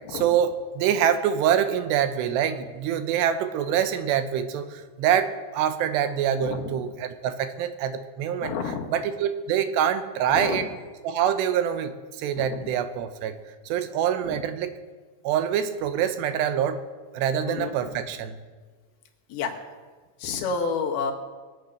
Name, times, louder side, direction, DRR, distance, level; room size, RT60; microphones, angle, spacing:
voice 1, 0.1-8.5 8.9-10.7 11.0-11.9 12.2-13.3 13.7-14.8 15.2-16.8 17.1-18.4, right 9 dB, 75° right, 9 dB, 2.9 m, -25 dB
voice 2, 8.4-8.8 10.3-10.7 12.4-12.5 17.5-17.8 19.3-19.5 20.2-21.1, left 5 dB, 65° left, 1 dB, 3.1 m, -29 dB
22.5 x 8.4 x 6.5 m, 1.4 s
omnidirectional pair, 5.1 m